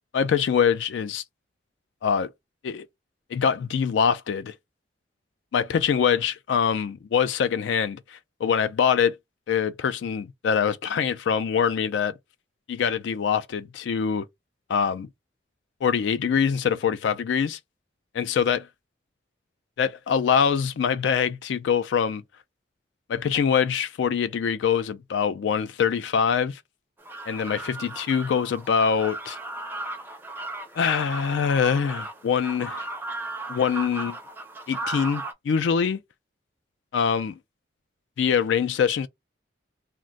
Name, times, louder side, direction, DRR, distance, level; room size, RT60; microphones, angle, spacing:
voice 1, 0.1-1.2 2.0-2.3 2.6-2.9 3.3-4.5 5.5-9.2 9.5-12.1 12.7-14.3 14.7-15.1 15.8-17.6 18.1-18.6 19.8-22.2 23.1-26.6 27.3-29.4 30.8-32.9 33.5-34.2 34.7-36.0 36.9-37.3 38.2-39.1, left 7 dB, 75° left, 0.3 m, -24 dB
sound 1, 27.0-35.3, right 2 dB, 10° right, 0.4 m, -36 dB
2.4 x 2.1 x 3.8 m
head